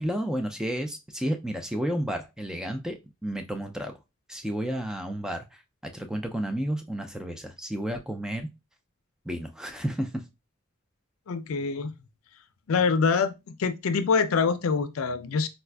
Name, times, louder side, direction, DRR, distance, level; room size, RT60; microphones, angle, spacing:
voice 1, 0.0-3.9 4.3-5.6 5.9-8.5 9.3-10.2, equal, 5° right, 0.3 m, -31 dB
voice 2, 11.3-11.9 12.7-13.3 13.6-15.5, left 5 dB, 85° left, 0.4 m, -25 dB
4.2 x 2.4 x 2.2 m
head